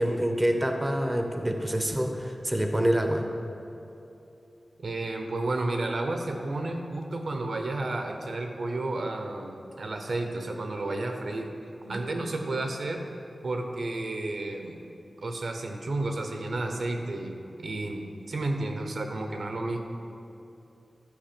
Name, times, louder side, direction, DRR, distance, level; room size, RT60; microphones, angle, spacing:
voice 1, 0.0-3.3, right 1 dB, 15° right, 4 dB, 0.7 m, -26 dB
voice 2, 4.8-11.5 11.8-13.0 13.4-14.8 15.2-19.8, right 2 dB, 70° right, 4 dB, 0.9 m, -32 dB
12.0 x 5.5 x 5.2 m, 2.8 s
wide cardioid pair, 105°, 0 cm